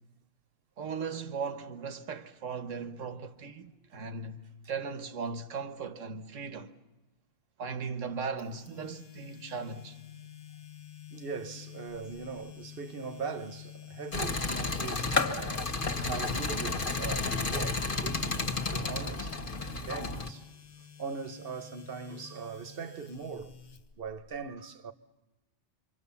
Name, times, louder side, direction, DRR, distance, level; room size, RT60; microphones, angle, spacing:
voice 1, 0.8-6.7 7.6-10.0 15.5-15.6, right 5 dB, 85° right, 1.5 m, -38 dB
sound 1, 8.4-24.4, left 9 dB, 80° left, 1.6 m, -49 dB
voice 2, 11.1-15.7 16.1-19.4 19.6-20.5 21.0-23.5 24.0-24.9, right 5 dB, 50° right, 1.2 m, -40 dB
sound 2, 14.1-20.3, left 3 dB, 45° left, 1.5 m, -31 dB
27.5 x 25.5 x 7.0 m
omnidirectional pair, 1.3 m